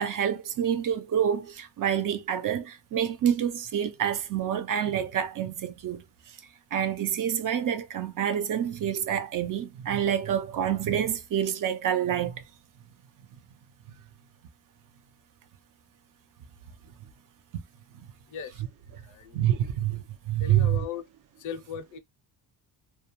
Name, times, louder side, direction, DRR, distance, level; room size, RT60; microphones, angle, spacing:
voice 1, 0.0-6.0 6.7-12.4 18.6-18.7 19.3-20.8, right 9 dB, 45° right, 0.5 m, -27 dB
voice 2, 19.1-19.6 20.4-21.0 21.4-22.0, left 7 dB, 45° left, 0.5 m, -37 dB
2.3 x 2.2 x 2.8 m
cardioid pair, 105°, 45 cm